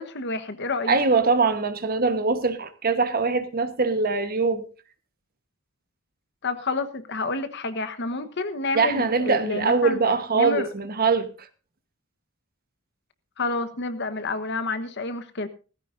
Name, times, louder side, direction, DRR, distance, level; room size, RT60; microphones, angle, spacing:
voice 1, 0.0-1.0 6.4-10.0 10.3-10.7 13.4-15.5, left 3 dB, 55° left, 1.2 m, -29 dB
voice 2, 0.9-4.6 8.7-11.3, right 4 dB, 45° right, 1.2 m, -22 dB
17.0 x 15.0 x 2.6 m
head